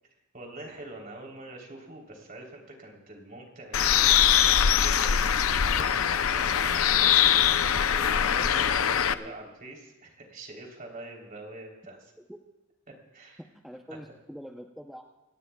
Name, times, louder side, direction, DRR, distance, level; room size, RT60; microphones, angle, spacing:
voice 1, 0.3-12.1 13.1-13.4, right 1 dB, 40° right, 0 dB, 3.5 m, -45 dB
Bird, 3.7-9.1, left 9 dB, 85° left, 0.6 m, -22 dB
voice 2, 13.6-15.0, equal, ahead, 1 dB, 0.7 m, -44 dB
28.0 x 17.5 x 2.3 m, 1.1 s
head